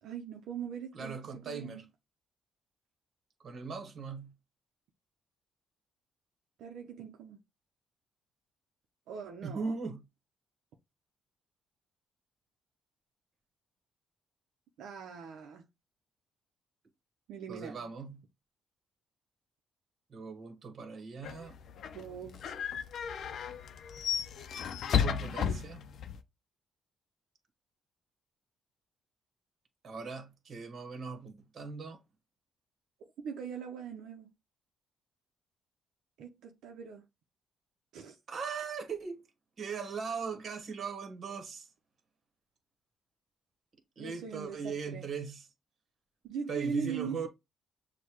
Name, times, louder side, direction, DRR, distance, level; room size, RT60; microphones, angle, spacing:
voice 1, 0.0-1.8 6.6-7.4 9.1-9.8 14.8-15.6 17.3-17.9 21.9-22.6 25.4-25.5 33.2-34.3 36.2-37.1 37.9-38.2 44.0-45.1 46.2-47.3, right 6 dB, 80° right, 0.6 m, -41 dB
voice 2, 0.9-1.8 3.4-4.3 9.4-10.0 17.5-18.2 20.1-21.6 25.0-25.8 29.8-32.0 38.3-39.2 39.6-41.7 44.0-45.5 46.5-47.3, right 5 dB, 50° right, 1.2 m, -39 dB
sound 1, 21.2-26.2, left 8 dB, 65° left, 0.5 m, -34 dB
6.4 x 2.2 x 3.0 m
cardioid pair, 90°, 0 cm